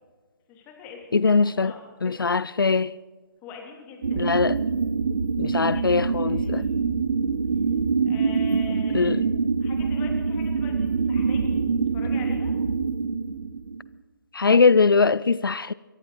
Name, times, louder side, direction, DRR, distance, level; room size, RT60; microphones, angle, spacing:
voice 1, 0.5-2.4 3.4-4.3 5.4-6.8 8.0-9.1 9.6-12.5, left 5 dB, 15° left, 3.0 m, -44 dB
voice 2, 1.1-1.7 2.0-2.9 4.2-4.6 5.4-6.6 8.9-9.2 14.3-15.7, left 4 dB, 80° left, 0.4 m, -21 dB
sound 1, 4.0-13.9, right 5 dB, 60° right, 0.9 m, -25 dB
23.5 x 11.0 x 4.8 m
figure-of-eight pair, 140°, 11 cm